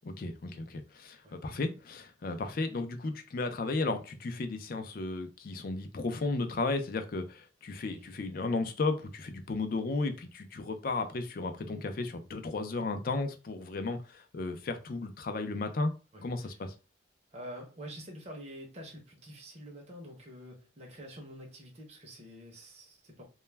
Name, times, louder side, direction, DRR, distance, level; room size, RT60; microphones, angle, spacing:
voice 1, 0.0-15.9 16.2-16.7, left 3 dB, 50° left, 0.4 m, -34 dB
voice 2, 16.1-16.6 17.3-23.2, equal, 35° right, 0.6 m, -47 dB
2.2 x 2.1 x 3.2 m
head